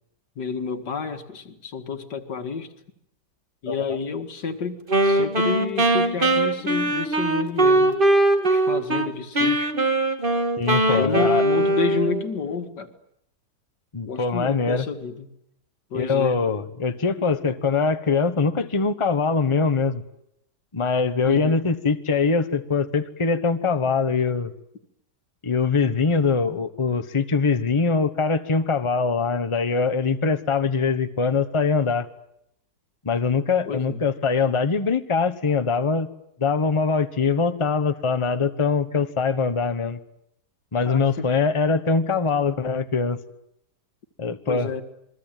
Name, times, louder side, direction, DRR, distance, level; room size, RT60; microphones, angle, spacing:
voice 1, 0.4-2.7 3.6-8.0 8.4-9.7 10.9-12.9 14.1-15.3 15.9-16.4 21.2-21.7 33.7-34.0 40.9-41.3 44.5-44.8, left 5 dB, 80° left, 2.5 m, -30 dB
voice 2, 3.7-4.0 10.6-11.4 13.9-14.9 15.9-20.0 20.7-24.5 25.4-32.1 33.0-36.1 36.4-40.0 40.7-43.2 44.2-44.7, left 4 dB, 20° left, 1.2 m, -23 dB
Wind instrument woodwind instrument, 4.9-9.1 9.3-12.3, right 2 dB, 30° right, 2.4 m, -21 dB
28.0 x 22.5 x 9.2 m
omnidirectional pair, 1.8 m